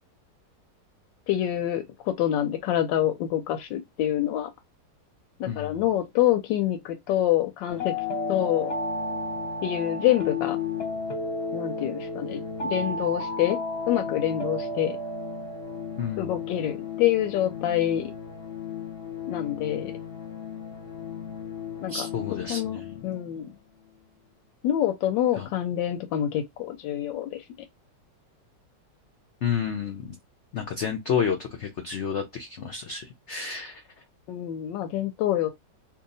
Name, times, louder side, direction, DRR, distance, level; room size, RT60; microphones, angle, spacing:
voice 1, 1.3-4.5 5.4-7.9 8.3-8.7 9.6-10.6 11.5-13.6 13.9-15.0 16.2-18.1 19.3-19.9 21.8-22.1 22.5-23.5 24.6-27.4 34.3-35.5, left 12 dB, 90° left, 1.3 m, -26 dB
voice 2, 5.5-5.8 16.0-16.3 21.9-23.0 25.4-25.5 29.4-30.1 30.5-33.8, left 7 dB, 70° left, 0.6 m, -30 dB
sound 1, 7.7-23.4, left 3 dB, 40° left, 1.0 m, -33 dB
2.7 x 2.7 x 3.9 m
omnidirectional pair, 1.9 m